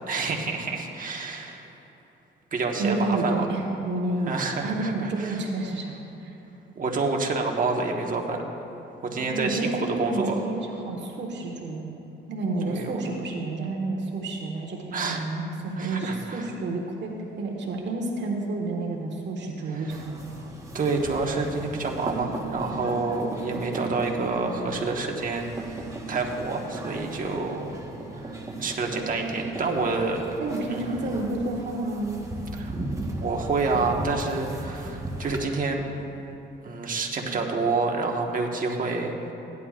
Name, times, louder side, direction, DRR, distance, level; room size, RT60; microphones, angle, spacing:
voice 1, 0.1-1.7 2.5-3.4 4.3-5.4 6.7-8.4 9.0-10.5 12.6-12.9 14.9-15.2 15.8-16.5 19.7-20.0 20.7-27.7 28.1-30.2 30.7-31.1 32.6-32.7 33.2-35.9 36.6-39.3, right 3 dB, 45° right, 1 dB, 1.4 m, -28 dB
voice 2, 2.7-6.3 9.2-11.9 12.3-20.1 30.4-32.2, right 2 dB, 65° right, 0 dB, 1.4 m, -30 dB
sound 1, 19.9-35.4, right 2 dB, 15° right, 1.3 m, -36 dB
16.5 x 11.0 x 2.5 m, 2.9 s
cardioid pair, 90°, 20 cm